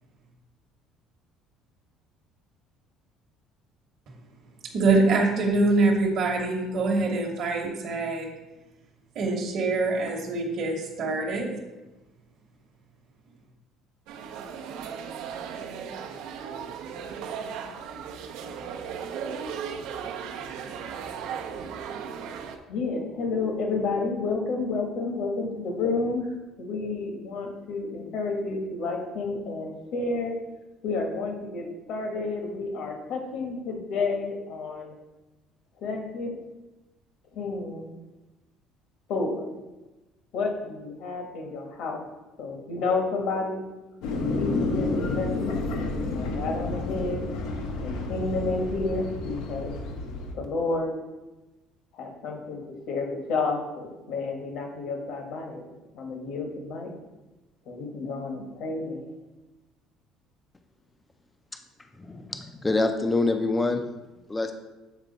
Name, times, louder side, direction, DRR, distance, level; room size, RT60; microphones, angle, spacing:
voice 1, 4.6-8.3 9.1-11.5, right 3 dB, 45° right, 1.1 m, -24 dB
sound 1, 14.1-22.6, right 7 dB, 75° right, 0.6 m, -36 dB
voice 2, 22.7-26.3 26.6-30.4 30.8-34.9 35.8-36.3 37.3-37.9 39.1-39.6 40.3-42.1 42.4-43.6 44.1-45.6 46.1-47.3 47.8-49.7 50.3-51.0 51.9-56.9 57.7-59.1, left 3 dB, 60° left, 1.3 m, -30 dB
sound 2, 44.0-50.3, left 3 dB, 80° left, 0.9 m, -30 dB
voice 3, 62.0-63.8 64.3-64.5, left 2 dB, 10° left, 0.4 m, -25 dB
7.3 x 4.5 x 4.0 m
cardioid pair, 155°, 0 cm